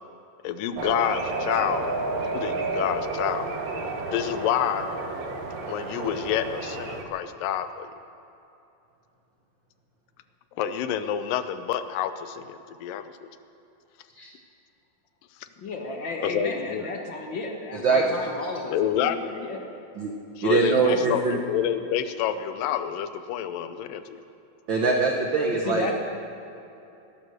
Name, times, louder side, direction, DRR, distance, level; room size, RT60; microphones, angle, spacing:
voice 1, 0.4-1.9 2.3-3.5 4.1-4.8 5.7-7.9 10.6-13.1 16.2-16.8 18.7-19.4 20.4-24.2, left 10 dB, 85° left, 11 dB, 2.4 m, -28 dB
sound 1, 0.8-7.0, right 3 dB, 55° right, 2.1 m, -31 dB
voice 2, 15.6-19.6 20.7-21.2 25.5-25.9, left 3 dB, 55° left, 2 dB, 1.4 m, -33 dB
voice 3, 17.7-18.1 20.0-20.1 20.4-21.4 24.7-25.9, right 4 dB, 85° right, 1 dB, 1.0 m, -23 dB
19.0 x 11.5 x 6.5 m, 2.8 s
omnidirectional pair, 3.8 m